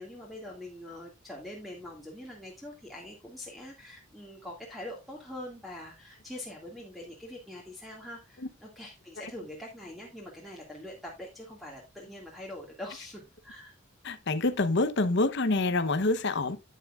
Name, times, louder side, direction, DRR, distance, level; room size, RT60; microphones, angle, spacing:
voice 1, 0.0-13.8, left 1 dB, ahead, 2.0 m, -44 dB
voice 2, 14.0-16.6, left 2 dB, 50° left, 0.8 m, -26 dB
10.5 x 9.5 x 2.4 m
head